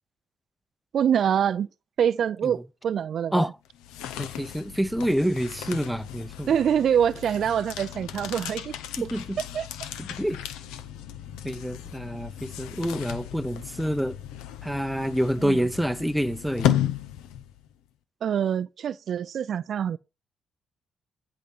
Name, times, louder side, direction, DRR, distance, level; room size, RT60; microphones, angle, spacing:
voice 1, 0.9-1.7 2.0-3.5 6.5-8.7 9.0-9.1 9.5-9.7 15.4-15.6 18.2-20.0, right 8 dB, 65° right, 0.4 m, -25 dB
sound 1, 3.6-17.7, left 11 dB, 90° left, 0.8 m, -34 dB
voice 2, 4.2-6.5 9.0-9.4 10.0-10.4 11.4-14.2 14.6-16.8, equal, ahead, 0.7 m, -27 dB
10.0 x 3.7 x 7.2 m
supercardioid pair, 60°, 0 cm